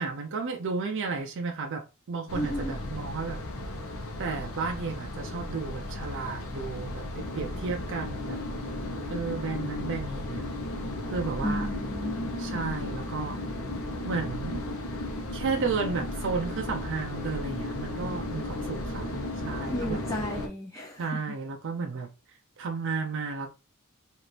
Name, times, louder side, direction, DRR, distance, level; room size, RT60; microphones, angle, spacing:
voice 1, 0.0-3.5 4.2-8.4 9.1-10.5 11.1-11.7 12.4-13.4 14.0-14.6 15.3-19.1 19.4-20.0 21.0-22.1 22.6-23.5, right 4 dB, 60° right, 0.5 m, -33 dB
sound 1, 2.3-20.5, left 1 dB, 75° left, 0.8 m, -35 dB
voice 2, 2.3-2.8 11.4-12.8 19.7-21.0, equal, 15° left, 0.5 m, -33 dB
4.2 x 2.5 x 3.3 m
head